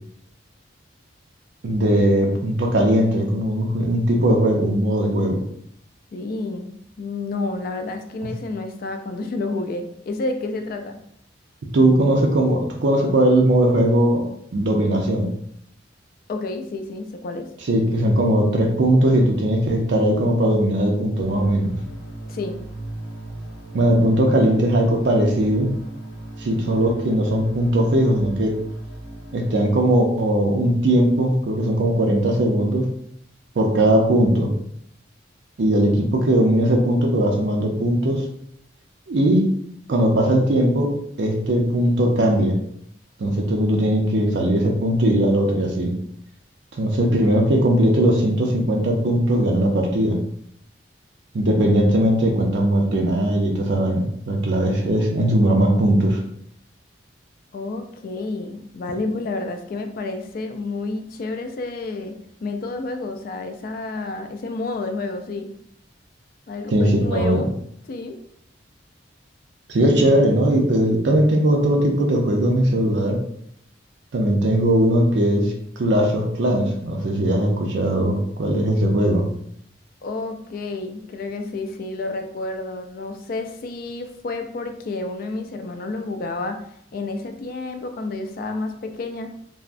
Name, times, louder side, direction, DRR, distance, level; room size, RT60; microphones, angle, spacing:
voice 1, 1.6-5.4 11.7-14.3 14.5-15.3 17.6-21.8 23.7-25.7 26.4-28.6 29.3-32.9 33.6-34.5 35.6-38.2 39.1-39.5 39.9-42.6 43.2-45.9 46.8-50.2 51.3-56.2 66.7-67.4 69.7-73.2 74.1-79.3, right 1 dB, 65° right, 1 dB, 0.4 m, -19 dB
voice 2, 6.1-11.0 16.3-17.5 22.3-22.6 57.5-62.2 62.4-65.5 66.5-67.5 67.9-68.2 80.0-86.6 86.9-89.3, left 3 dB, 50° left, 6 dB, 0.3 m, -30 dB
sound 1, 21.2-29.6, right 2 dB, 90° left, 0.6 m, -36 dB
3.4 x 2.0 x 2.5 m, 0.70 s
head